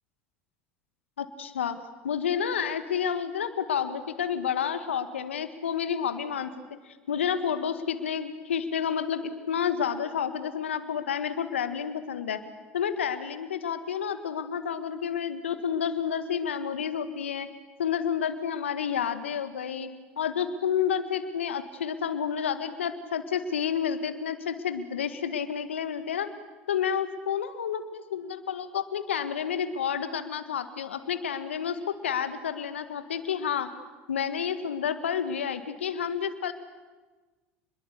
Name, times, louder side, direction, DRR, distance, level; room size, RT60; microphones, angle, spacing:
voice 1, 1.2-1.8 2.0-6.5 6.8-12.4 12.7-17.5 17.8-19.9 20.2-26.3 26.7-33.7 34.1-36.5, left 8 dB, 85° left, 10 dB, 1.8 m, -30 dB
28.5 x 22.0 x 8.3 m, 1.2 s
hypercardioid pair, 80°, 6 cm